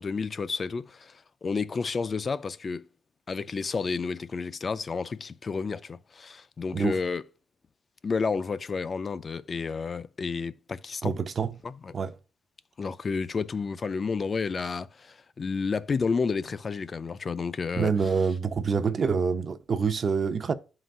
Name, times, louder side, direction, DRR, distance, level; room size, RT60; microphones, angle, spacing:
voice 1, 0.0-2.8 3.3-7.2 8.0-11.1 11.6-11.9 12.8-17.9, left 5 dB, 40° left, 0.4 m, -31 dB
voice 2, 11.0-11.6 11.9-12.1 17.8-20.5, right 5 dB, 45° right, 0.5 m, -26 dB
11.0 x 3.8 x 2.4 m
cardioid pair, 90°, 0 cm